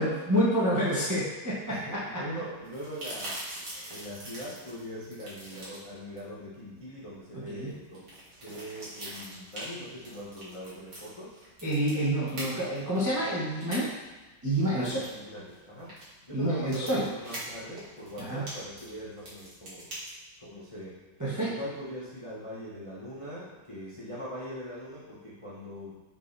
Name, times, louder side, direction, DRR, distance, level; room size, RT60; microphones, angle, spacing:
voice 1, 0.0-2.2 3.7-3.9 7.3-7.7 11.6-13.9 14.4-15.0 16.3-17.0 18.2-18.4 21.2-21.5, right 1 dB, 15° right, -8 dB, 0.7 m, -28 dB
voice 2, 1.7-3.4 3.9-8.1 8.4-11.4 14.4-15.9 16.2-19.9 20.4-21.0 21.4-26.0, equal, 35° left, -8 dB, 0.5 m, -41 dB
sound 1, 2.5-20.1, right 1 dB, 55° right, 2.4 m, -44 dB
6.4 x 5.8 x 2.7 m, 1.2 s
omnidirectional pair, 2.3 m